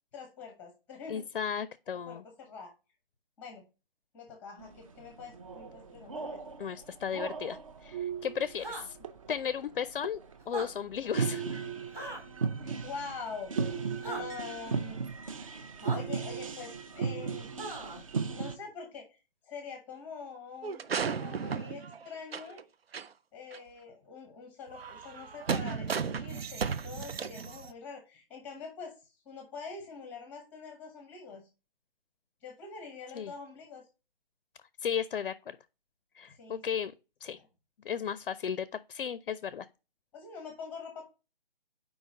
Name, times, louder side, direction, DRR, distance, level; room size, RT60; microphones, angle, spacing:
voice 1, 0.1-1.2 2.1-2.7 3.4-3.6 4.1-6.4 12.6-15.0 15.9-17.5 18.3-19.2 19.4-22.6 23.3-28.9 29.3-31.5 32.4-33.8 36.3-36.9 40.1-41.1, left 5 dB, 5° left, 0.7 m, -45 dB
voice 2, 1.1-2.2 6.6-9.0 9.3-10.2 10.5-11.6 33.1-33.3 34.8-35.6 36.2-36.9 37.2-37.4 37.8-39.7, left 8 dB, 70° left, 0.5 m, -35 dB
sound 1, 4.6-18.6, right 5 dB, 35° right, 0.5 m, -37 dB
sound 2, 8.6-8.9 10.4-10.7 11.9-12.2 14.0-14.2 15.8-16.0 17.6-18.0, right 1 dB, 10° right, 1.1 m, -39 dB
sound 3, 20.6-22.6 22.9-23.1 23.5-23.6 24.7-27.7, right 6 dB, 85° right, 0.6 m, -35 dB
4.8 x 3.9 x 4.9 m
figure-of-eight pair, 150°, 29 cm